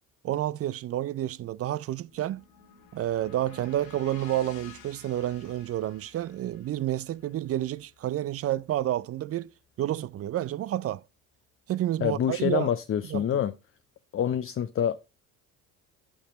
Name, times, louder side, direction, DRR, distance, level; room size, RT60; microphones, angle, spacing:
voice 1, 0.2-2.4 2.9-9.5 9.8-11.0 11.7-12.7 13.1-13.4, right 13 dB, 40° right, 0.4 m, -30 dB
sound 1, 1.8-9.7, left 7 dB, 80° left, 2.1 m, -53 dB
voice 2, 12.0-13.5 14.1-15.0, left 9 dB, 35° left, 0.7 m, -26 dB
8.6 x 5.8 x 4.1 m
hypercardioid pair, 60°, 39 cm